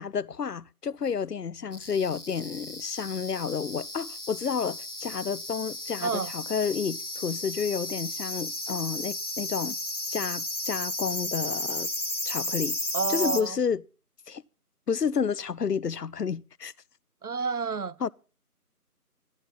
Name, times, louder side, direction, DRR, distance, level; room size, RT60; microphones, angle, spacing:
voice 1, 0.0-9.8 10.1-11.9 12.3-12.8 13.1-13.8 14.3-14.4 14.9-16.7 18.0-18.1, left 6 dB, 80° left, 0.7 m, -30 dB
sound 1, 1.7-13.4, left 1 dB, 50° left, 1.5 m, -34 dB
voice 2, 6.0-6.3 12.9-13.6 17.2-18.1, right 5 dB, 70° right, 0.6 m, -30 dB
14.5 x 14.5 x 3.9 m
figure-of-eight pair, 175°, 47 cm